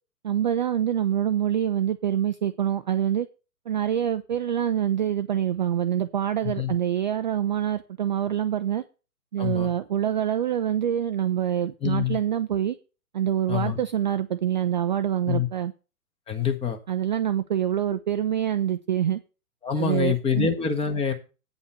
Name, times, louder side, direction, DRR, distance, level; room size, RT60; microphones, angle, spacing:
voice 1, 0.2-3.3 3.7-8.8 9.3-12.8 13.1-15.7 16.9-19.2 19.8-20.5, right 10 dB, 35° right, 0.4 m, -25 dB
voice 2, 9.4-9.7 11.8-12.2 13.5-13.8 15.3-15.5 16.3-16.8 19.6-21.1, left 7 dB, 10° left, 1.2 m, -25 dB
9.0 x 5.5 x 6.6 m
figure-of-eight pair, 120°, 45 cm